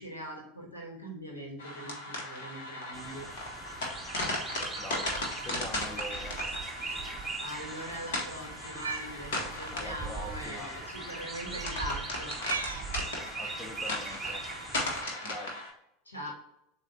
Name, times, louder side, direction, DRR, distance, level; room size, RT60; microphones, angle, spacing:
voice 1, 0.0-3.3 5.4-5.5 6.7-12.3 16.0-16.3, equal, 85° left, 0 dB, 1.3 m, -42 dB
sound 1, 1.6-15.7, left 2 dB, 65° left, 1.3 m, -37 dB
sound 2, 2.9-15.0, right 4 dB, 15° right, 0.6 m, -41 dB
voice 2, 4.8-6.4 9.7-11.1 13.4-14.5 15.2-15.6, left 2 dB, 20° left, 5 dB, 0.7 m, -44 dB
Cat, 8.6-9.1 10.2-10.3 11.5-11.8 12.4-12.9 13.8-14.2, right 4 dB, 80° right, 0.5 m, -37 dB
7.1 x 2.4 x 2.8 m, 0.80 s
figure-of-eight pair, 80°, 0 cm